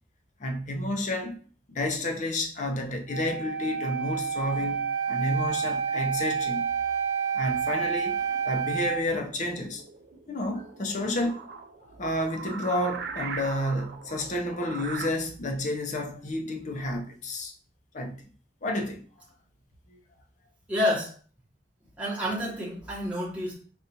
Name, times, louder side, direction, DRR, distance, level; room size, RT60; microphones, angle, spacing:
voice 1, 0.4-1.3 1.7-6.6 7.3-8.2 8.4-9.8 10.3-11.5 12.0-17.5 17.9-18.1 18.6-19.0 19.9-20.0, left 1 dB, 45° left, 0.6 m, -30 dB
Wind instrument woodwind instrument, 3.1-9.0, right 6 dB, 40° right, 0.9 m, -29 dB
sound 1, 8.2-15.1, right 5 dB, 65° right, 0.4 m, -41 dB
voice 2, 20.7-21.1 22.0-23.5, left 1 dB, 10° right, 1.0 m, -28 dB
5.2 x 2.4 x 2.8 m
head